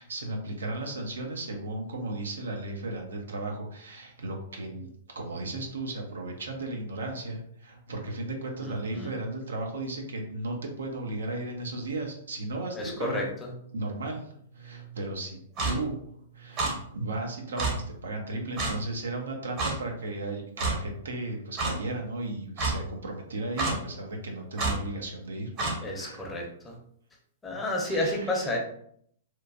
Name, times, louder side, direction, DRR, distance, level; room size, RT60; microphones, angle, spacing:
voice 1, 0.0-13.3 13.7-25.5 25.8-26.3 27.8-28.5, right 2 dB, 85° right, 2 dB, 0.7 m, -35 dB
voice 2, 8.6-9.1 12.8-13.2 25.8-26.7 27.4-28.6, left 1 dB, 15° left, 0 dB, 0.7 m, -31 dB
Clock, 15.6-15.7 16.6-16.7 17.6-17.7 18.6-18.7 19.6-19.7 20.6-20.8 21.6-21.7 22.6-22.7 23.6-23.8 24.6-24.7 25.6-25.7, right 3 dB, 35° right, 0.8 m, -27 dB
3.0 x 2.1 x 2.5 m, 0.66 s
hypercardioid pair, 125°, 0 cm